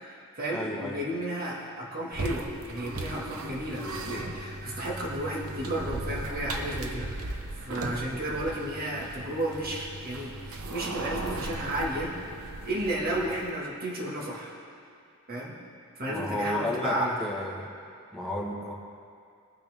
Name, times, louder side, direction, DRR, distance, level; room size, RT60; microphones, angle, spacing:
voice 1, 0.0-12.1 12.6-14.5 15.3-15.6 16.0-17.2, right 1 dB, 45° right, -4 dB, 2.0 m, -33 dB
voice 2, 0.5-1.0 16.1-17.7 18.1-18.7, left 1 dB, ahead, -4 dB, 1.6 m, -32 dB
sound 1, 2.1-13.6, right 2 dB, 75° right, 0.9 m, -37 dB
21.5 x 9.3 x 3.7 m, 2.4 s
head